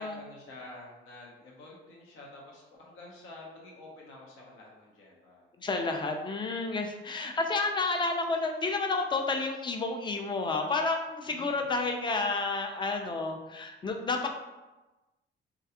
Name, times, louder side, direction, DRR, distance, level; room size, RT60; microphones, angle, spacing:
voice 1, 0.0-5.5 11.2-11.8, left 2 dB, 80° left, -3 dB, 0.8 m, -49 dB
voice 2, 5.6-14.3, left 3 dB, 25° left, 4 dB, 0.4 m, -30 dB
2.3 x 2.3 x 2.8 m, 1.1 s
cardioid pair, 90°, 20 cm